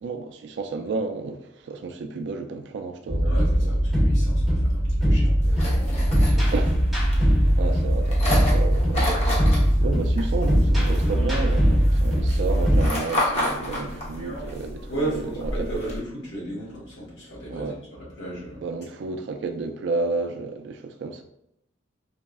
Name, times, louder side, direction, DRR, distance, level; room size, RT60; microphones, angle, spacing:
voice 1, 0.0-3.8 6.5-6.8 7.6-9.3 9.8-15.7 17.5-17.8 18.6-21.2, right 3 dB, 65° right, 0.3 m, -31 dB
sound 1, 3.1-12.9, equal, ahead, 0.9 m, -20 dB
voice 2, 3.2-6.6 14.9-18.6, right 2 dB, 70° left, 1.2 m, -35 dB
sound 2, 5.4-16.0, left 1 dB, 35° left, 0.6 m, -31 dB
3.4 x 2.0 x 2.2 m
head